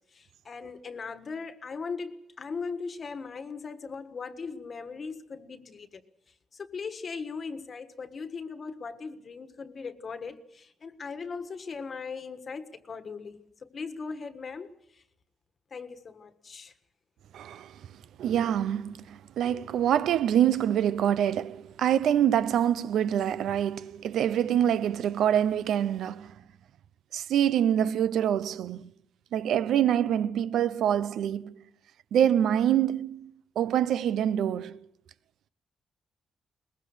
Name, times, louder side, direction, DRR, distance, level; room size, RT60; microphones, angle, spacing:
voice 1, 0.1-6.0 6.5-15.0 15.7-16.7, left 5 dB, 35° left, 1.5 m, -39 dB
voice 2, 17.3-17.7 18.2-26.3 27.1-28.8 29.3-31.5 32.1-33.3 33.6-34.8, right 10 dB, 75° right, 0.7 m, -25 dB
22.0 x 21.0 x 6.5 m
cardioid pair, 165°, 0 cm